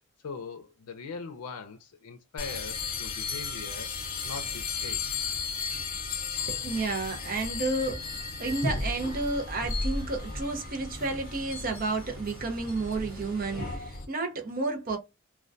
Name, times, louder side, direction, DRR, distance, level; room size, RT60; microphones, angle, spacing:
voice 1, 0.2-3.9 4.2-5.0, left 5 dB, 90° left, 0.5 m, -41 dB
sound 1, 2.4-14.0, left 4 dB, 40° left, 0.7 m, -35 dB
voice 2, 6.5-15.0, right 3 dB, 40° right, 0.6 m, -31 dB
sound 2, 8.5-13.8, equal, 75° right, 1.0 m, -49 dB
2.2 x 2.2 x 2.5 m
head